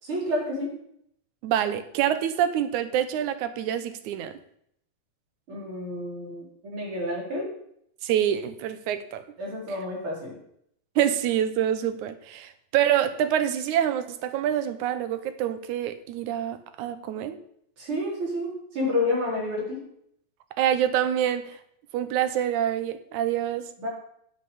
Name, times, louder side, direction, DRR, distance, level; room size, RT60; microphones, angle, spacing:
voice 1, 0.0-0.7 5.5-7.5 9.4-10.3 17.8-19.8 23.8-23.9, left 2 dB, 45° right, -4 dB, 4.5 m, -29 dB
voice 2, 1.4-4.3 8.0-9.2 11.0-17.4 20.6-21.6 21.9-23.7, right 10 dB, 90° right, 11 dB, 2.3 m, -26 dB
8.4 x 7.5 x 7.0 m, 0.71 s
omnidirectional pair, 3.3 m